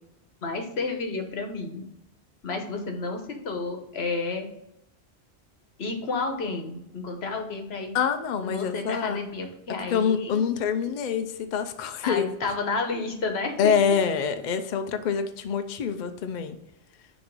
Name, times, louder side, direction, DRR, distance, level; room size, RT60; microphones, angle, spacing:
voice 1, 0.4-1.8 2.4-4.5 5.8-8.0 8.4-10.4 12.0-13.7, left 3 dB, 75° left, 5 dB, 1.2 m, -31 dB
voice 2, 7.9-9.2 9.9-12.3 13.6-16.6, left 7 dB, 55° left, 8 dB, 0.5 m, -26 dB
6.2 x 3.0 x 5.3 m, 0.82 s
omnidirectional pair, 1.1 m